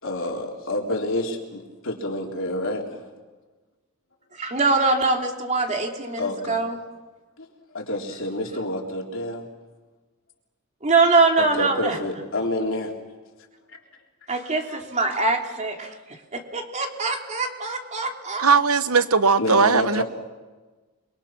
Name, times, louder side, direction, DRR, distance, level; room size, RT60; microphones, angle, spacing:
voice 1, 0.0-3.0 6.2-6.6 7.4-9.5 11.4-12.9 14.7-14.8 19.4-20.0, left 1 dB, 65° left, 1 dB, 3.9 m, -28 dB
voice 2, 4.3-6.8 10.8-12.0 14.3-15.9 16.3-18.4, right 3 dB, 35° right, 3 dB, 2.9 m, -23 dB
voice 3, 18.4-20.0, right 5 dB, 80° right, 12 dB, 1.2 m, -18 dB
28.5 x 23.0 x 6.1 m, 1.2 s
head